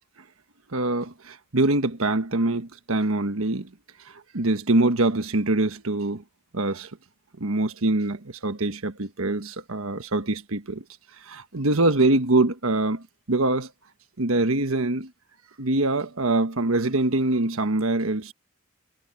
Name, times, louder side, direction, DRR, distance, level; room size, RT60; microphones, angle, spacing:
voice 1, 0.7-3.7 4.3-6.2 6.5-6.9 7.4-10.8 11.3-13.0 13.3-13.7 14.2-15.1 15.6-18.3, right 2 dB, 70° right, 1.4 m, -24 dB
head